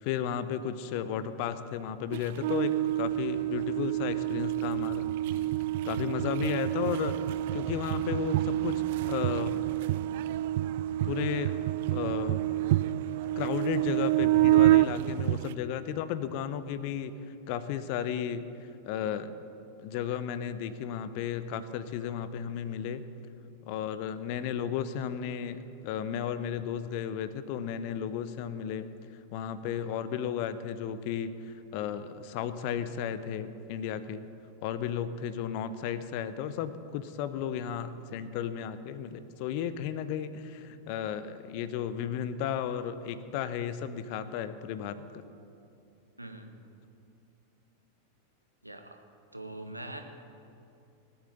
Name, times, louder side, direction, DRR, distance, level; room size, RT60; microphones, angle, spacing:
voice 1, 0.0-5.1 5.8-7.1 7.5-9.6 11.0-11.6 11.9-12.4 13.4-17.1 17.5-18.5 18.9-19.3 19.8-23.0 23.6-28.9 29.3-34.2 34.6-45.2, left 9 dB, 45° left, 13 dB, 0.8 m, -34 dB
sound 1, 2.1-15.5, right 15 dB, 50° right, 0.3 m, -28 dB
voice 2, 46.2-46.5 48.6-49.0 49.3-50.0, right 1 dB, 85° right, 5 dB, 1.3 m, -42 dB
18.5 x 8.8 x 6.8 m, 2.7 s
figure-of-eight pair, 90°, 0 cm